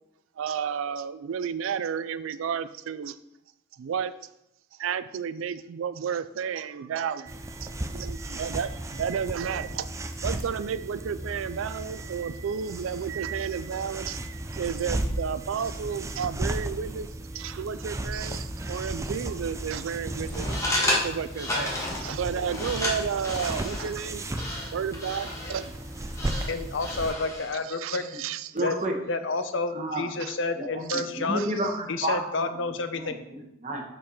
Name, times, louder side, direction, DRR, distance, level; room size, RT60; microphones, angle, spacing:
voice 1, 0.4-3.2 3.8-4.1 4.8-17.1 17.3-20.5 21.0-25.8 26.3-26.5 27.7-28.6 30.2-30.4 30.9-31.1 31.4-31.5, right 7 dB, 85° right, 14 dB, 0.4 m, -32 dB
sound 1, 7.3-27.1, right 1 dB, 15° right, 0.4 m, -35 dB
sound 2, 20.2-27.6, left 1 dB, 15° left, 1.7 m, -32 dB
voice 2, 26.5-28.0 28.6-28.7 29.1-31.5 31.9-33.2, left 3 dB, 70° left, 8 dB, 0.7 m, -30 dB
voice 3, 28.5-29.0 29.7-30.0 30.6-32.5 32.9-33.8, right 1 dB, 40° right, 2 dB, 1.3 m, -31 dB
7.4 x 4.6 x 5.5 m, 0.85 s
head